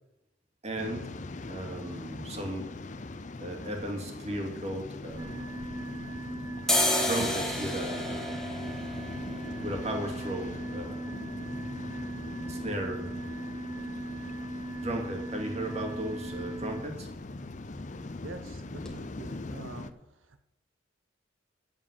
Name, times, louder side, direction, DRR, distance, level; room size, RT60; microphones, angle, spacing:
voice 1, 0.6-1.1 1.5-2.7 3.4-5.6 7.0-8.5 9.6-11.1 12.5-13.1 14.8-17.1, right 1 dB, 35° right, 2 dB, 2.3 m, -36 dB
Waves surf, 0.8-19.9, left 2 dB, 40° left, 0.6 m, -41 dB
sound 1, 5.1-6.2 6.5-14.2 14.5-14.6 14.9-15.5 15.8-16.0 16.2-16.5 16.8-17.5 17.8-18.0 18.5-18.6 18.8-18.9, left 1 dB, 5° left, 1.6 m, -34 dB
sound 2, 5.2-16.8, right 2 dB, 20° right, 0.4 m, -39 dB
voice 2, 18.2-20.4, right 3 dB, 85° right, 8 dB, 0.8 m, -46 dB
9.0 x 7.5 x 8.4 m, 0.87 s
head